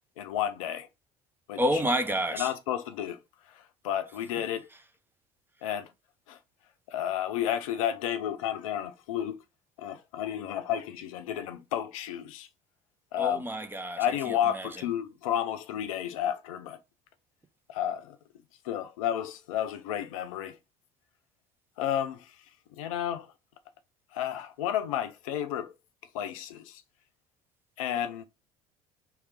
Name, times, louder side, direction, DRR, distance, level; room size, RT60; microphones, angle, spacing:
voice 1, 0.2-0.9 1.5-1.6 2.3-3.2 3.5-4.7 5.6-5.9 6.3-6.4 6.9-9.4 9.8-12.5 13.1-13.4 14.0-16.8 17.7-18.2 18.6-20.6 21.8-22.3 22.8-23.3 24.1-25.7 26.1-26.8 27.8-28.2, left 10 dB, 65° left, 0.6 m, -31 dB
voice 2, 1.5-2.5 13.2-14.7, equal, 10° right, 0.7 m, -29 dB
3.2 x 3.2 x 4.7 m
figure-of-eight pair, 60°, 19 cm